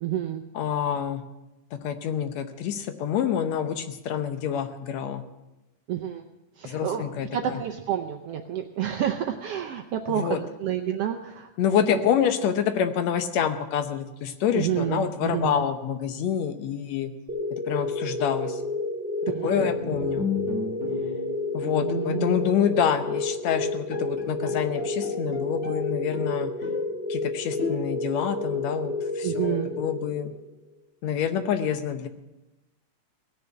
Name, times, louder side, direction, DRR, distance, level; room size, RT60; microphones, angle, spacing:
voice 1, 0.0-0.4 5.9-6.3 6.6-12.0 14.5-15.6 19.2-19.7 29.2-29.7, right 10 dB, 75° right, 6 dB, 1.4 m, -29 dB
voice 2, 0.6-1.2 1.8-5.2 6.6-7.6 10.2-10.4 11.6-17.1 17.7-18.6 19.4-20.3 21.5-26.5 27.1-30.3 31.0-32.1, left 8 dB, 70° left, 9 dB, 1.9 m, -27 dB
sound 1, 17.3-30.4, left 3 dB, 20° right, 2.7 m, -30 dB
Bowed string instrument, 19.6-22.6 22.9-23.2 23.6-23.7 23.9-25.8 26.1-26.9 27.6-28.2, left 1 dB, 25° left, 2.2 m, -33 dB
18.0 x 6.8 x 9.8 m, 1.0 s
omnidirectional pair, 3.5 m